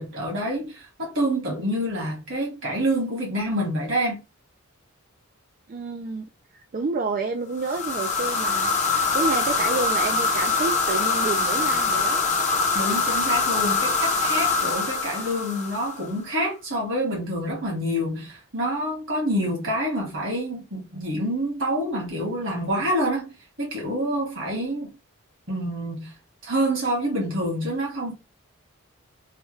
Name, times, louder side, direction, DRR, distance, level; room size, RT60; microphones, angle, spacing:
voice 1, 0.0-4.2 12.7-23.3 23.6-24.9 25.5-26.1 26.4-28.1, equal, 60° right, 1.6 m, -27 dB
voice 2, 5.7-6.3 6.7-12.2, right 3 dB, 40° right, 0.3 m, -29 dB
sound 1, 7.6-16.1, left 4 dB, 35° left, 0.7 m, -24 dB
3.3 x 2.2 x 3.1 m
head